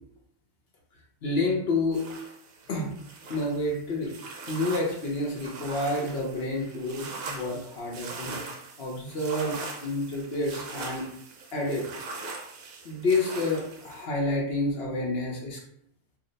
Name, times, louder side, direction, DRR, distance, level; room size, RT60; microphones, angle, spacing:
voice 1, 1.2-2.0 2.7-2.9 3.3-8.4 8.8-11.1 11.5-11.9 12.8-15.6, left 2 dB, 55° left, -1 dB, 0.7 m, -29 dB
sound 1, 1.9-14.0, right 3 dB, 65° right, 0.9 m, -41 dB
2.8 x 2.0 x 3.9 m, 0.71 s
omnidirectional pair, 1.8 m